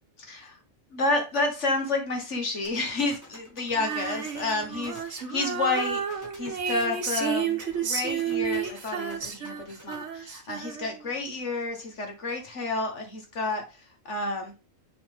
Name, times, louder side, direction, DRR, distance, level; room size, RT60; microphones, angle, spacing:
voice 1, 0.9-13.6 14.1-14.5, left 3 dB, 55° left, 3 dB, 1.8 m, -30 dB
sound 1, 2.6-10.0, left 1 dB, 15° left, 1.7 m, -48 dB
Female singing, 3.7-11.1, right 7 dB, 60° right, 1.5 m, -31 dB
6.9 x 5.5 x 3.5 m, 0.29 s
omnidirectional pair, 1.5 m